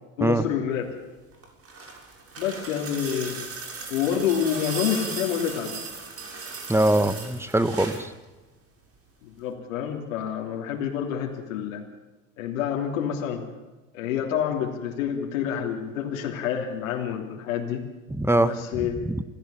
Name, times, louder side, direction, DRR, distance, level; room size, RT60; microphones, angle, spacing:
voice 1, 0.2-0.9 2.4-3.4 3.9-5.8 9.2-11.9 12.4-13.4 13.9-17.9 18.4-19.1, left 9 dB, 75° left, 0 dB, 3.3 m, -28 dB
sound 1, 1.3-8.1 9.4-9.5, right 4 dB, 35° right, 6.8 m, -37 dB
voice 2, 6.7-8.1 18.1-19.2, right 1 dB, 5° right, 12 dB, 1.7 m, -23 dB
27.5 x 17.5 x 7.2 m, 1.2 s
hypercardioid pair, 75°, 40 cm